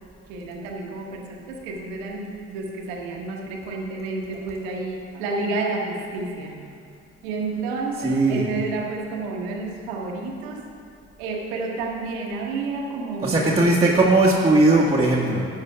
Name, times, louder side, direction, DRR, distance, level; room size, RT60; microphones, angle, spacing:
voice 1, 0.3-6.6 7.2-10.7 11.2-13.6, right 3 dB, 80° right, 0 dB, 1.2 m, -30 dB
voice 2, 8.0-8.5 13.2-15.5, right 2 dB, 20° right, -5 dB, 1.5 m, -18 dB
12.0 x 7.8 x 3.4 m, 2.3 s
hypercardioid pair, 45°, 31 cm